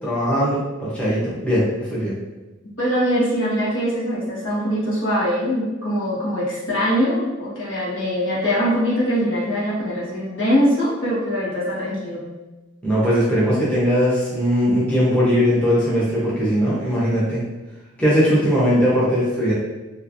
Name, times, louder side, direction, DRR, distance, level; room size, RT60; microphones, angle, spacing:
voice 1, 0.0-2.1 12.8-17.4 18.0-19.5, equal, 5° left, -9 dB, 0.9 m, -19 dB
voice 2, 2.8-12.2, equal, 75° left, -8 dB, 1.4 m, -22 dB
3.2 x 2.9 x 2.6 m, 1.1 s
head